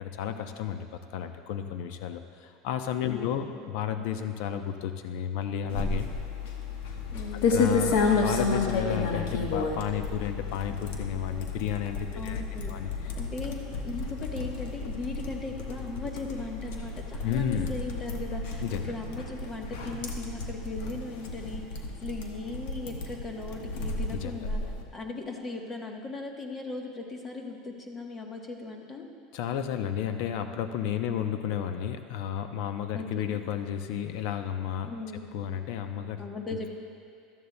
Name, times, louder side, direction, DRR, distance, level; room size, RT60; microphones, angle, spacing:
voice 1, 0.0-6.1 7.5-12.4 12.7-13.1 17.2-17.7 18.6-18.9 24.1-24.3 29.3-34.9 35.3-36.2 36.5-36.7, left 9 dB, 65° left, 8 dB, 0.6 m, -32 dB
voice 2, 3.1-3.5 7.1-7.6 12.2-12.7 13.2-24.6 24.9-29.1 30.9-31.3 32.9-33.4 34.9-35.3 36.2-36.7, left 3 dB, 20° left, 2 dB, 1.0 m, -38 dB
sound 1, 5.7-24.8, left 4 dB, 80° left, 1.1 m, -31 dB
14.5 x 12.5 x 2.2 m, 2.4 s
supercardioid pair, 155°, 0 cm